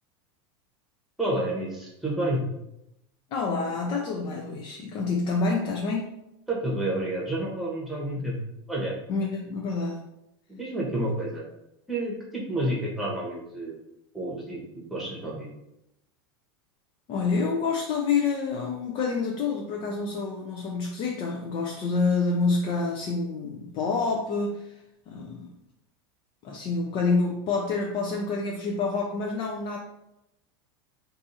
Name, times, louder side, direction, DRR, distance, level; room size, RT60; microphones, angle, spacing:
voice 1, 1.2-2.4 6.5-8.4 8.7-8.9 10.5-11.4 11.9-13.8 14.1-14.6 14.9-15.5, right 1 dB, ahead, -4 dB, 1.0 m, -29 dB
voice 2, 3.3-6.1 8.2-8.3 9.1-10.0 17.1-24.8 25.1-25.5 26.4-29.8, left 4 dB, 40° left, 0 dB, 0.4 m, -27 dB
2.6 x 2.5 x 3.9 m, 0.84 s
supercardioid pair, 130°, 13 cm